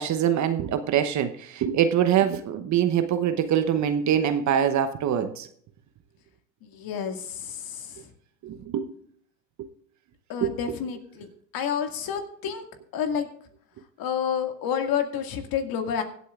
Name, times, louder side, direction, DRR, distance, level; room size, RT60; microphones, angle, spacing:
voice 1, 0.0-5.5 8.4-8.9 9.6-9.7 10.4-10.6, right 9 dB, 35° right, 1.0 m, -24 dB
voice 2, 6.6-8.1 10.3-11.3 11.5-12.6 12.9-13.3 14.0-16.0, left 8 dB, 45° left, 2.2 m, -29 dB
24.5 x 8.2 x 2.5 m
hypercardioid pair, 85°, 49 cm